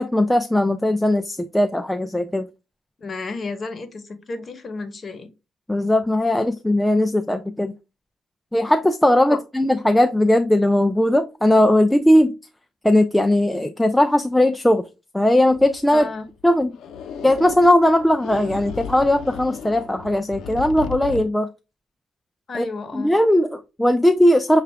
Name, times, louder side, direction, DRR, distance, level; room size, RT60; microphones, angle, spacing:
voice 1, 0.0-2.5 5.7-7.7 8.5-12.3 12.8-14.8 15.1-16.1 16.4-16.8 17.2-21.5 22.5-22.7 22.9-24.6, left 1 dB, 5° left, 0.4 m, -18 dB
voice 2, 3.0-5.3 9.3-9.4 15.9-16.3 22.5-23.1, left 3 dB, 35° left, 1.0 m, -32 dB
sound 1, 15.4-21.2, left 6 dB, 70° left, 0.6 m, -35 dB
6.6 x 2.4 x 3.3 m
cardioid pair, 90°, 0 cm